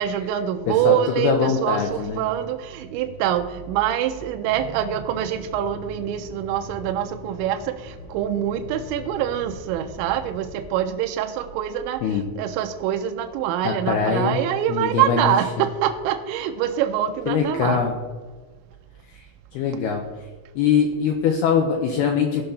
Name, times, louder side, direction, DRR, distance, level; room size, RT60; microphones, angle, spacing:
voice 1, 0.0-7.6 8.1-12.0 12.4-17.8, right 10 dB, 85° right, 5 dB, 2.7 m, -25 dB
voice 2, 0.7-2.2 12.0-12.2 13.6-14.4 14.7-15.3 17.3-18.0 19.5-20.0 20.6-22.4, left 6 dB, 80° left, 1 dB, 2.3 m, -22 dB
Accelerating revving vroom, 4.5-10.7, left 2 dB, 60° left, 2.2 m, -41 dB
16.5 x 5.7 x 4.0 m, 1.4 s
omnidirectional pair, 5.6 m